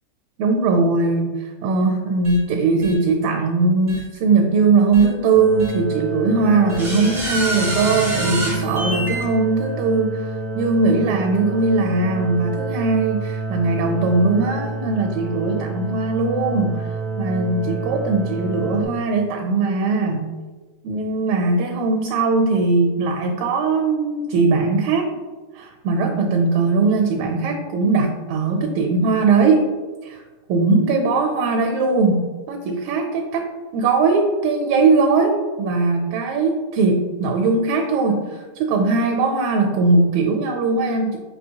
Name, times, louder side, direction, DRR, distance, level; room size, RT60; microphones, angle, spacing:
voice 1, 0.4-10.3 10.5-16.9 17.2-20.3 20.8-25.1 25.5-29.6 30.0-30.2 30.5-33.5 33.7-41.2, right 3 dB, 85° right, 3 dB, 1.5 m, -20 dB
sound 1, 2.2-2.4 2.8-2.9 3.9-4.0 4.9-5.0 5.6-5.7 6.7-9.2, right 1 dB, 60° right, 0.3 m, -26 dB
sound 2, 5.3-18.8, right 2 dB, 60° left, 1.4 m, -28 dB
5.7 x 2.9 x 2.8 m, 1.3 s
omnidirectional pair, 2.4 m